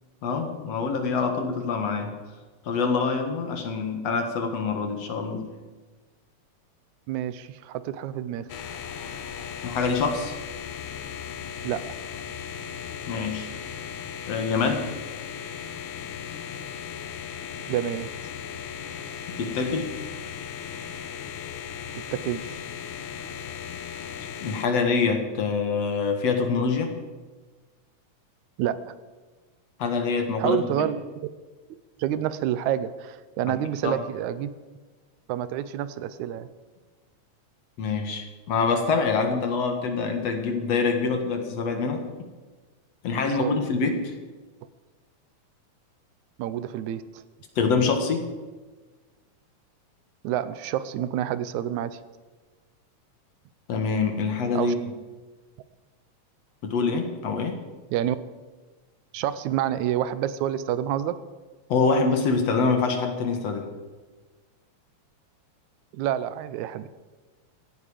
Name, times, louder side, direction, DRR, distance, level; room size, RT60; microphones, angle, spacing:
voice 1, 0.2-2.1 2.7-5.5 9.6-10.3 13.1-13.5 14.3-14.9 19.3-19.9 24.4-26.9 29.8-30.9 33.5-33.6 33.8-34.0 37.8-42.0 43.0-44.1 47.6-48.3 53.7-54.8 56.6-57.6 61.7-63.7, left 4 dB, 60° left, 5 dB, 2.6 m, -25 dB
voice 2, 7.1-8.5 11.6-11.8 17.7-18.1 21.9-22.6 28.6-28.9 30.4-31.0 32.0-34.5 35.3-36.5 43.2-43.5 46.4-47.2 50.2-52.0 54.6-54.7 57.9-58.2 59.1-61.2 65.9-66.9, right 11 dB, 80° right, 14 dB, 2.1 m, -28 dB
sound 1, 8.5-24.7, left 8 dB, 90° left, 2.5 m, -37 dB
17.0 x 15.0 x 5.0 m, 1.3 s
omnidirectional pair, 3.4 m